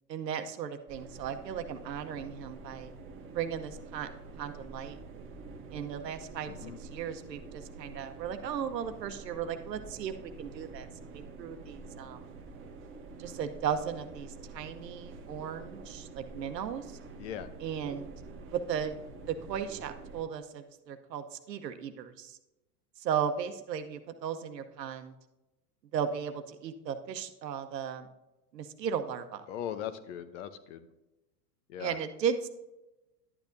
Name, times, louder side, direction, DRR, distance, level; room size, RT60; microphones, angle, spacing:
voice 1, 0.1-2.9 3.3-4.1 4.4-5.0 5.7-10.9 11.1-12.2 13.2-16.8 17.6-18.1 18.5-18.9 19.3-22.4 23.0-25.1 25.9-28.1 28.5-29.4 31.8-32.5, right 8 dB, 85° right, 8 dB, 1.0 m, -36 dB
sound 1, 0.9-20.2, right 3 dB, 25° right, 1.0 m, -47 dB
voice 2, 6.5-6.8 17.2-17.5 29.5-30.9 31.7-32.0, left 10 dB, 50° left, 12 dB, 0.8 m, -39 dB
11.0 x 8.4 x 2.6 m, 1.0 s
hypercardioid pair, 125°, 49 cm